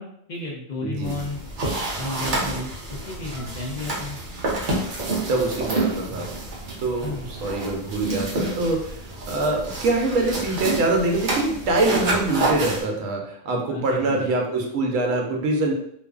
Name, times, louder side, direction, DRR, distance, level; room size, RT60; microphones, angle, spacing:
voice 1, 0.0-1.4 2.0-4.2 7.0-7.3 13.7-14.3, left 2 dB, 60° left, -4 dB, 0.4 m, -33 dB
voice 2, 0.8-1.1 5.2-6.3 6.8-9.0 9.3-15.7, right 2 dB, 80° right, 1 dB, 1.0 m, -24 dB
sound 1, 1.0-12.8, right 2 dB, 50° right, 0.6 m, -28 dB
2.5 x 2.4 x 2.3 m, 0.67 s
omnidirectional pair, 1.4 m